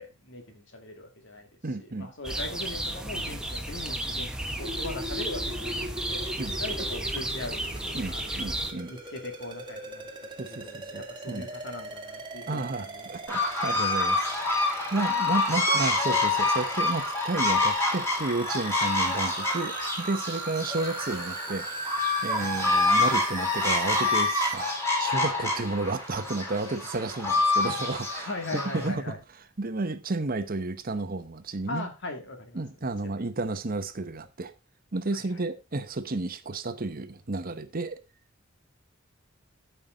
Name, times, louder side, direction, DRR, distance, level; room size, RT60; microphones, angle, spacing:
voice 1, 0.0-1.5 1.8-6.3 6.6-8.2 8.9-10.1 10.4-13.4 22.3-22.7 28.2-29.2 31.7-32.6 33.0-33.1, left 2 dB, 60° left, 2.4 m, -40 dB
voice 2, 1.6-2.1 6.4-6.6 7.9-8.9 10.4-11.5 12.5-14.3 14.6-29.2 29.6-31.9 32.5-34.5 34.9-38.0, right 3 dB, 45° right, 0.9 m, -32 dB
sound 1, 2.2-8.7, right 1 dB, 5° right, 1.2 m, -33 dB
sound 2, 4.6-24.5, right 3 dB, 25° right, 1.7 m, -39 dB
sound 3, 13.3-28.9, left 2 dB, 15° left, 3.4 m, -27 dB
13.0 x 5.8 x 3.9 m
head